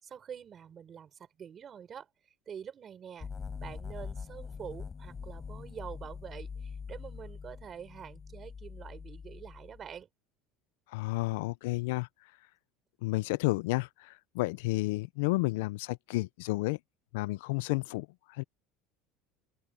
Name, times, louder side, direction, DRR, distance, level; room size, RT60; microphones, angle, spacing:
voice 1, 0.0-2.1 2.5-3.3 3.6-10.1, right 8 dB, 25° right, 5.9 m, -46 dB
sound 1, 3.2-10.0, left 5 dB, 15° left, 4.4 m, -43 dB
voice 2, 10.9-12.1 13.0-16.8 17.1-18.4, left 21 dB, 85° left, 0.4 m, -31 dB
open air
cardioid pair, 180°, 0 cm